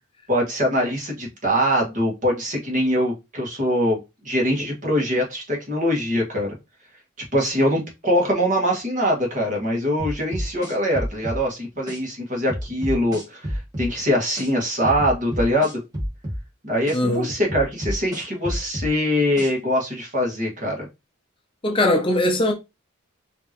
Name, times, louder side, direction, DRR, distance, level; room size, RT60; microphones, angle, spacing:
voice 1, 0.3-4.0 4.2-6.6 7.3-15.8 16.6-20.9, equal, 40° right, 1.8 m, -23 dB
sound 1, 10.0-11.4 11.9-12.0 12.5-13.9 14.4-14.5 14.8-16.4 16.9-17.0 17.5-18.9 19.4-19.5, equal, 20° right, 1.9 m, -29 dB
voice 2, 16.9-17.3 21.6-22.5, left 1 dB, 25° left, 0.6 m, -20 dB
5.1 x 2.9 x 3.0 m
head